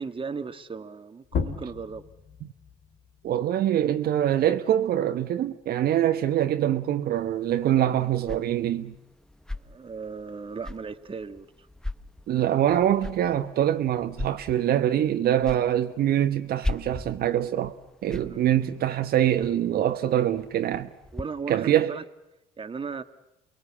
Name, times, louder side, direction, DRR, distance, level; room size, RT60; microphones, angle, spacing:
voice 1, 0.0-2.0 9.6-11.5 18.2-18.4 21.1-22.0 22.6-23.0, right 5 dB, 30° right, 1.6 m, -36 dB
sound 1, 1.2-6.5 6.9-8.6, left 6 dB, 60° left, 3.1 m, -38 dB
voice 2, 3.2-8.9 12.3-17.7 18.0-20.9 21.5-21.9, right 11 dB, 60° right, 1.1 m, -24 dB
sound 2, 7.2-21.2, left 2 dB, 5° left, 1.0 m, -40 dB
29.0 x 21.0 x 8.6 m
hypercardioid pair, 55°, 18 cm